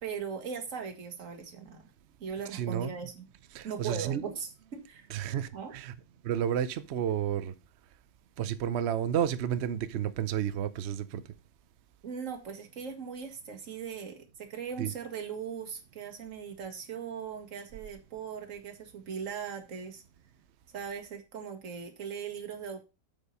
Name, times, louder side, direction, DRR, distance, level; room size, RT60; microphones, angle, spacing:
voice 1, 0.0-1.9 2.2-3.3 3.6-5.1 5.5-5.7 12.0-20.0 20.7-22.8, right 6 dB, 45° right, 1.9 m, -39 dB
voice 2, 2.5-2.9 3.5-4.2 5.1-5.9 6.2-7.5 8.4-11.2 14.8-14.9, right 9 dB, 70° right, 0.6 m, -31 dB
8.1 x 5.5 x 5.3 m
omnidirectional pair, 1.9 m